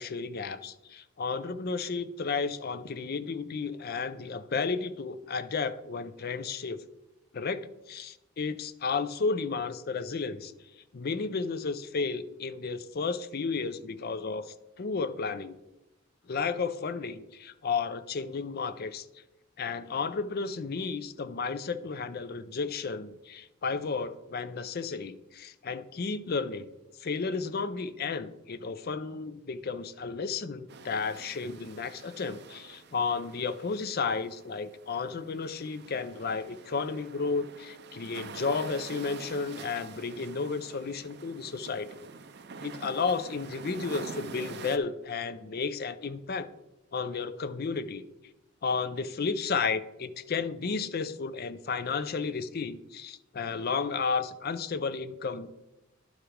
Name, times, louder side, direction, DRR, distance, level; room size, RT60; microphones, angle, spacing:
voice 1, 0.0-6.8 7.3-15.6 16.3-19.1 19.6-26.7 27.0-41.9 42.6-46.5 46.9-48.0 48.6-55.5, left 4 dB, 50° left, 13 dB, 0.5 m, -33 dB
sound 1, 30.7-44.8, right 4 dB, 55° right, 0.6 m, -46 dB
11.5 x 4.8 x 5.0 m, 0.97 s
head